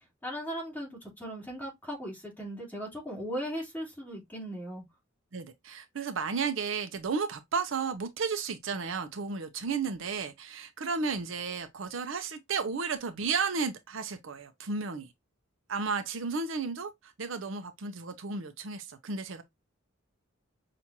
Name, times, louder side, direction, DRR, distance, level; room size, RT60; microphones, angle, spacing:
voice 1, 0.2-4.8, equal, 10° left, 2.5 m, -38 dB
voice 2, 5.3-15.1 15.7-19.4, right 5 dB, 65° right, 0.6 m, -33 dB
5.8 x 2.5 x 2.8 m
head